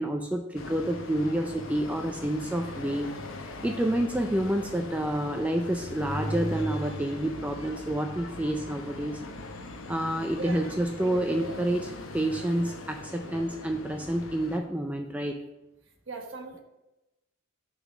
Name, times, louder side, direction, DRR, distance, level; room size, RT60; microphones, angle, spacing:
voice 1, 0.0-3.2 3.6-9.2 9.9-11.9 12.1-15.4, right 1 dB, 5° right, 3 dB, 0.3 m, -29 dB
sound 1, 0.5-14.6, left 1 dB, 70° left, 0.8 m, -39 dB
voice 2, 10.2-11.6 13.3-13.4 16.1-16.6, right 4 dB, 60° right, 3 dB, 1.1 m, -41 dB
6.7 x 3.9 x 6.1 m, 0.97 s
head